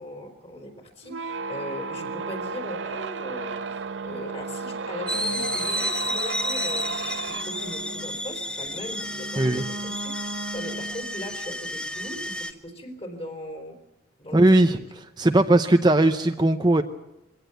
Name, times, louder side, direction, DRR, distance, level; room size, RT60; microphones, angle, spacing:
voice 1, 0.0-13.8 14.2-14.8, equal, 30° left, 5 dB, 4.1 m, -39 dB
sound 1, 1.0-11.4, right 4 dB, 75° right, 0.8 m, -34 dB
sound 2, 5.1-12.5, left 1 dB, 5° left, 1.0 m, -31 dB
voice 2, 14.3-14.8 15.2-16.8, right 1 dB, 25° right, 7 dB, 0.7 m, -18 dB
23.0 x 17.5 x 8.0 m, 0.94 s
head